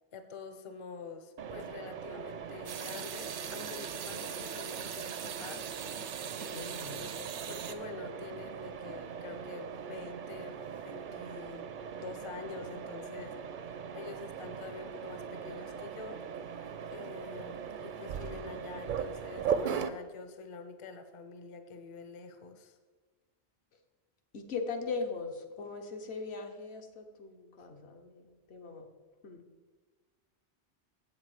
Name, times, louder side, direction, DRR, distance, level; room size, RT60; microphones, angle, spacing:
voice 1, 0.1-5.7 6.4-10.6 10.8-13.6 13.9-16.2 16.9-22.8 27.6-27.7, left 4 dB, 35° left, 8 dB, 0.6 m, -46 dB
Mechanisms, 1.4-19.9, right 7 dB, 60° right, 0.6 m, -40 dB
sound 1, 2.7-7.7, right 8 dB, 80° right, 0.9 m, -41 dB
voice 2, 6.5-7.0 24.3-28.9 29.2-29.4, left 4 dB, 70° left, 4 dB, 1.1 m, -40 dB
7.7 x 7.3 x 4.8 m, 1.3 s
omnidirectional pair, 1.2 m